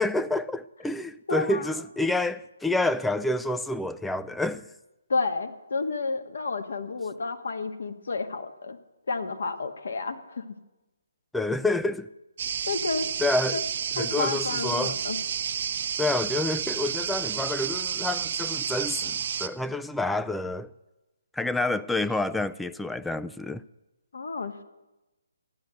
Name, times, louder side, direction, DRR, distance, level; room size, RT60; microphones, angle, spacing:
voice 1, 0.0-4.7 11.3-12.1 13.2-13.6 14.0-15.0 16.0-20.7 21.3-23.6, left 2 dB, 5° left, 0.3 m, -28 dB
voice 2, 1.3-1.7 5.1-8.8 9.1-10.4 12.7-13.1 13.5-13.6 14.0-15.2 24.1-24.6, left 4 dB, 65° left, 1.5 m, -31 dB
sound 1, 12.4-19.5, right 8 dB, 45° right, 0.7 m, -30 dB
13.0 x 9.4 x 7.8 m
figure-of-eight pair, 145°, 0 cm